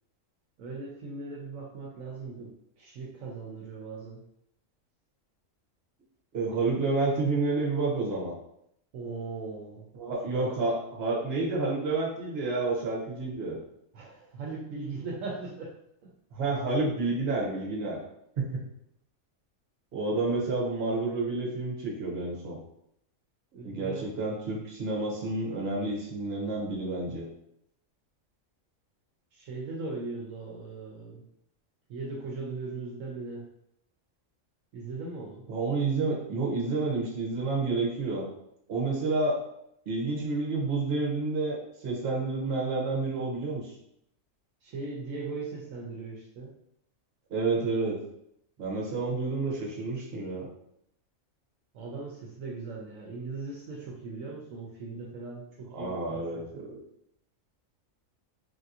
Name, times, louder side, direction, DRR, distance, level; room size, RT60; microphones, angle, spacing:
voice 1, 0.6-2.5 2.8-4.2 8.9-9.9 10.3-10.5 13.9-15.8 23.5-24.1 29.3-31.2 31.9-33.4 34.7-35.4 44.6-46.6 51.7-56.5, right 3 dB, 80° right, -2 dB, 1.0 m, -39 dB
voice 2, 6.3-8.3 9.9-13.6 16.3-18.0 18.4-18.6 19.9-22.6 23.6-27.3 35.5-38.3 38.7-39.4 39.9-43.7 47.3-48.0 48.6-50.5 55.7-56.8, right 3 dB, 55° right, -3 dB, 1.0 m, -29 dB
3.3 x 2.7 x 2.4 m, 0.76 s
omnidirectional pair, 1.4 m